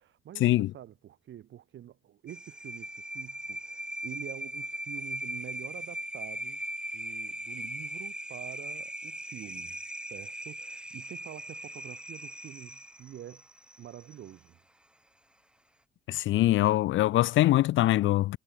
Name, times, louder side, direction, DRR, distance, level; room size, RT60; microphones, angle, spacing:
voice 1, 0.0-13.4 13.8-14.6, right 11 dB, 70° right, 5.8 m, -47 dB
sound 1, 2.3-14.3, right 1 dB, 5° right, 1.8 m, -39 dB
voice 2, 16.1-18.4, left 15 dB, 75° left, 0.6 m, -23 dB
cardioid pair, 90°, 20 cm